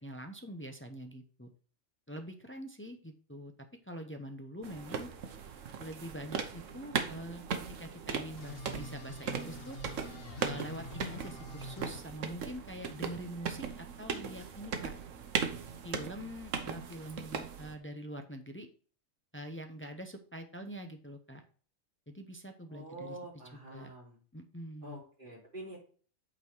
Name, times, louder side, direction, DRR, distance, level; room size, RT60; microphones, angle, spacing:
voice 1, 0.0-1.5 2.1-3.5 3.8-5.1 5.8-7.4 7.8-9.8 10.4-14.9 15.8-18.7 19.3-21.4 22.1-23.2 23.7-23.9 24.3-25.0, equal, 15° left, 5 dB, 0.5 m, -44 dB
sound 1, 4.6-17.8, right 6 dB, 70° right, 1.2 m, -38 dB
sound 2, 8.4-12.0, left 2 dB, 45° left, 1.2 m, -46 dB
voice 2, 22.7-24.2 24.8-25.8, right 2 dB, 40° right, -4 dB, 3.4 m, -46 dB
8.4 x 4.2 x 4.5 m, 0.42 s
omnidirectional pair, 1.4 m